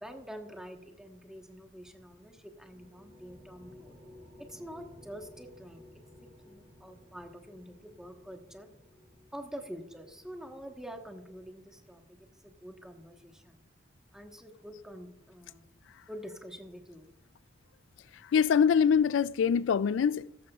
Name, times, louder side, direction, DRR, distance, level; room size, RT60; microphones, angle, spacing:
voice 1, 0.0-3.9 4.4-5.8 6.4-8.7 9.3-13.6 14.1-15.6 16.1-17.1, equal, 5° right, 1.2 m, -46 dB
sound 1, 2.2-11.9, left 1 dB, 40° right, 3.5 m, -57 dB
voice 2, 18.3-20.5, left 7 dB, 75° left, 0.3 m, -24 dB
15.5 x 14.0 x 2.4 m
head